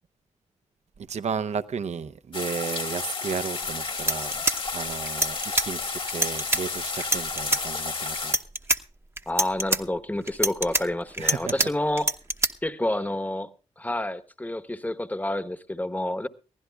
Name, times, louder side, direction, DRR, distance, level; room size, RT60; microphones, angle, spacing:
voice 1, 1.0-4.3 4.7-5.8 6.1-8.3 11.2-11.7, right 6 dB, 60° right, 0.7 m, -33 dB
sound 1, 2.3-8.3, left 4 dB, 45° left, 1.6 m, -32 dB
sound 2, 3.6-3.7 4.0-5.7 6.1-6.6 7.0-7.6 8.2-8.8 9.2-9.8 10.3-11.7 12.0-12.5, right 1 dB, 20° right, 0.9 m, -24 dB
voice 2, 9.3-12.1 12.6-13.5 13.8-16.3, left 1 dB, 10° left, 1.1 m, -29 dB
22.5 x 15.5 x 2.3 m
cardioid pair, 55°, 13 cm